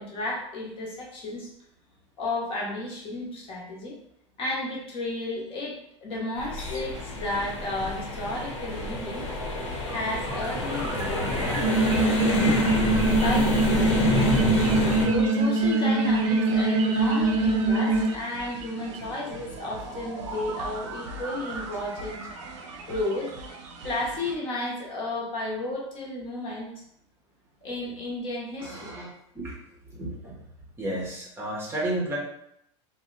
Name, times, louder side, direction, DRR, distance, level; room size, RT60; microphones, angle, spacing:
voice 1, 0.0-1.5 2.2-4.0 4.4-9.3 9.9-11.7 12.2-12.7 13.2-13.9 15.0-22.2 22.9-23.3 23.8-26.7 27.6-28.9, left 2 dB, 35° left, -3 dB, 0.9 m, -33 dB
sound 1, 6.4-15.1, left 2 dB, 85° left, 0.9 m, -28 dB
sound 2, 6.9-24.3, right 3 dB, 80° right, 0.6 m, -39 dB
sound 3, 11.6-18.1, right 2 dB, 35° right, 0.4 m, -23 dB
voice 2, 28.6-29.6 29.9-30.4 30.8-32.2, right 1 dB, 15° right, -4 dB, 0.8 m, -33 dB
2.8 x 2.1 x 3.8 m, 0.74 s
supercardioid pair, 135°, 16 cm